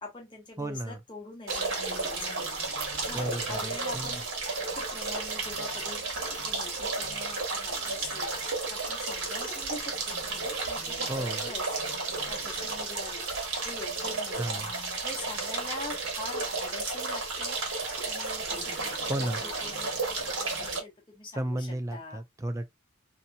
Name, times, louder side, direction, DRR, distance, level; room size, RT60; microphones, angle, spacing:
voice 1, 0.0-2.2 3.0-4.3 4.7-8.3 8.7-11.7 12.2-13.3 13.6-14.4 15.0-17.6 18.0-22.2, left 3 dB, 25° left, 0.8 m, -44 dB
voice 2, 0.6-1.0 3.1-4.2 11.1-11.5 14.4-14.7 19.1-19.4 21.3-22.7, right 1 dB, 15° right, 0.4 m, -33 dB
sound 1, 1.5-20.8, right 3 dB, 70° right, 1.2 m, -33 dB
2.7 x 2.7 x 2.2 m
head